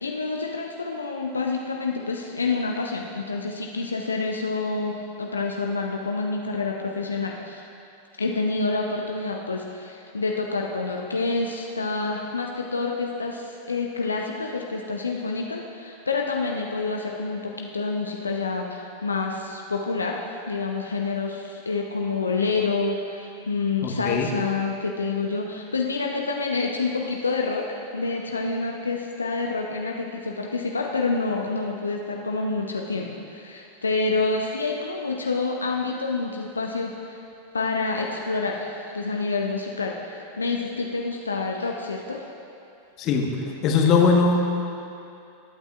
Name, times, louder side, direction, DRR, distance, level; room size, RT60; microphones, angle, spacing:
voice 1, 0.0-7.6 8.2-37.2 37.5-42.2, left 3 dB, 75° left, 1 dB, 0.7 m, -28 dB
voice 2, 23.8-24.3 43.0-43.3 43.6-44.4, left 5 dB, 35° left, 2 dB, 1.2 m, -20 dB
21.0 x 8.9 x 2.4 m, 2.7 s
figure-of-eight pair, 90°, 0 cm